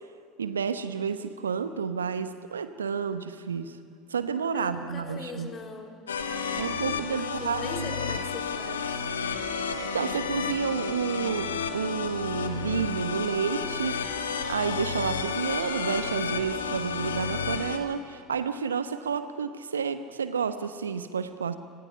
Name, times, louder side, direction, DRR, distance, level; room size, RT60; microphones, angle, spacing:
voice 1, 0.4-3.8 4.1-5.5 6.6-7.9 9.8-14.0 14.4-21.6, right 6 dB, 80° right, 11 dB, 1.0 m, -30 dB
voice 2, 4.5-6.0 7.1-9.0, left 4 dB, 35° left, 2 dB, 3.9 m, -40 dB
sound 1, 6.1-17.8, left 5 dB, 80° left, 1.4 m, -31 dB
29.5 x 26.0 x 5.8 m, 2.2 s
figure-of-eight pair, 70°, 0 cm